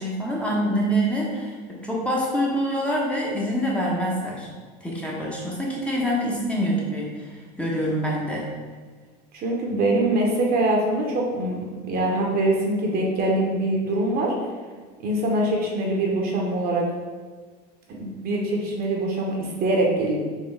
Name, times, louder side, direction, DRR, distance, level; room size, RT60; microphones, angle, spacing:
voice 1, 0.0-4.5 4.8-7.3 7.6-8.5, equal, 5° left, -4 dB, 0.9 m, -25 dB
voice 2, 9.3-14.3 15.0-16.9 17.9-20.2, right 1 dB, 45° right, -1 dB, 1.0 m, -23 dB
4.5 x 2.8 x 3.5 m, 1.5 s
supercardioid pair, 105°, 21 cm